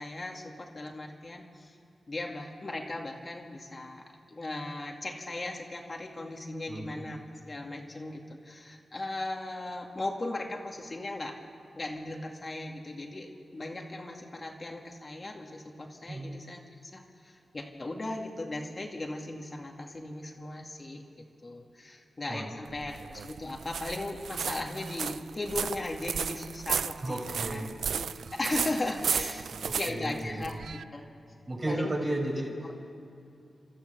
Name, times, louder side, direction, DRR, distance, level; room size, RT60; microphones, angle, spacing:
voice 1, 0.0-1.7 2.1-7.2 7.4-11.4 11.8-16.6 16.9-21.0 21.4-27.2 27.5-27.7 28.0-29.5 29.8-30.6 30.9-31.1 31.7-32.0, left 2 dB, 40° left, 1 dB, 2.2 m, -37 dB
voice 2, 6.7-7.0 16.1-16.4 22.3-22.5 27.0-27.7 29.5-30.5 31.5-32.8, right 1 dB, 45° right, 0 dB, 5.4 m, -34 dB
sound 1, 22.7-30.8, right 7 dB, 85° right, 0.4 m, -34 dB
29.0 x 13.0 x 6.9 m, 2.5 s
cardioid pair, 60°, 0 cm